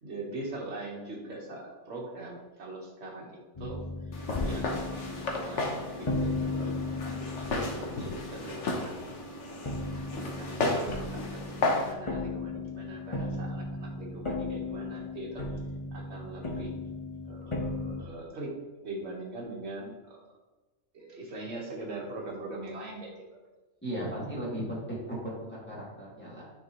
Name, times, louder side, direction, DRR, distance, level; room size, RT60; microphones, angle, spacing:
voice 1, 0.0-3.8 4.4-7.3 7.5-9.2 10.1-15.5 15.9-16.7 17.2-18.5 18.8-20.2 20.9-23.2, right 2 dB, 55° right, -2 dB, 1.6 m, -42 dB
sound 1, 3.5-9.3 9.6-18.0, left 2 dB, 25° left, 0.8 m, -36 dB
Walk footsteps, 4.1-11.9, left 2 dB, 65° left, 1.2 m, -33 dB
voice 2, 23.8-26.4, right 1 dB, 10° left, -8 dB, 1.9 m, -36 dB
9.6 x 4.7 x 3.1 m, 1.2 s
omnidirectional pair, 1.3 m